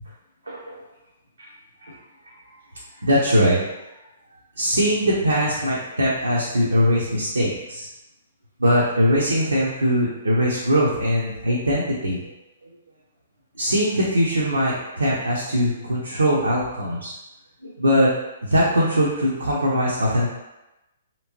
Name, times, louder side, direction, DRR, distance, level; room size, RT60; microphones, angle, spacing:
voice 1, 0.5-0.8 1.4-1.5 1.8-1.9 2.3-2.4 3.0-3.6 4.6-7.9 8.6-12.2 13.6-17.1 17.6-18.1 18.4-20.3, equal, 75° right, -4 dB, 0.6 m, -21 dB
3.3 x 2.9 x 2.8 m, 0.98 s
figure-of-eight pair, 120°, 0 cm